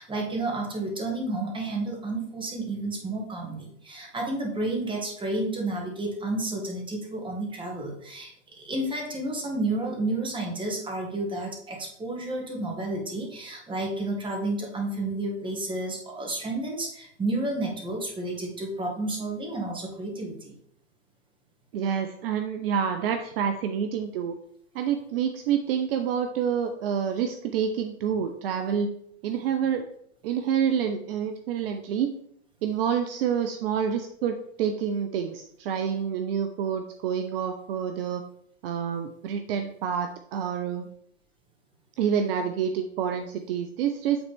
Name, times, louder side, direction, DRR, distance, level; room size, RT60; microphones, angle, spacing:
voice 1, 0.0-20.5, right 2 dB, 15° right, 0 dB, 2.0 m, -31 dB
voice 2, 21.7-24.4 24.7-28.9 29.2-29.8 30.2-32.1 32.6-38.2 38.6-40.9 42.0-44.2, right 8 dB, 55° right, 7 dB, 0.7 m, -28 dB
8.9 x 3.9 x 3.6 m, 0.70 s
hypercardioid pair, 105°, 35 cm